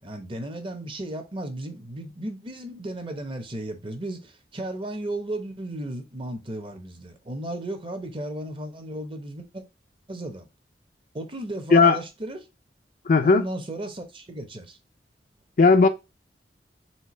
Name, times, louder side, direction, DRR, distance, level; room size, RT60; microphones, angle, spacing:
voice 1, 0.0-9.6 10.1-10.5 11.1-12.5 13.2-14.8, right 1 dB, 30° right, 0.9 m, -35 dB
voice 2, 13.1-13.4 15.6-15.9, left 4 dB, 50° left, 0.4 m, -16 dB
4.4 x 3.4 x 3.1 m
head